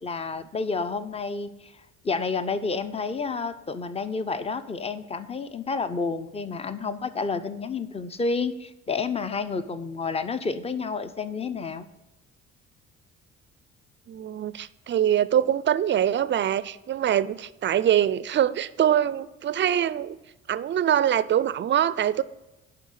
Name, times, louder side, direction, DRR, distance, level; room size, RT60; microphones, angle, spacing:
voice 1, 0.0-1.7 2.0-11.9, left 4 dB, 20° left, 0.6 m, -30 dB
voice 2, 14.1-20.2 20.5-22.2, right 10 dB, 35° right, 0.5 m, -24 dB
11.0 x 3.7 x 6.6 m
hypercardioid pair, 60°, 33 cm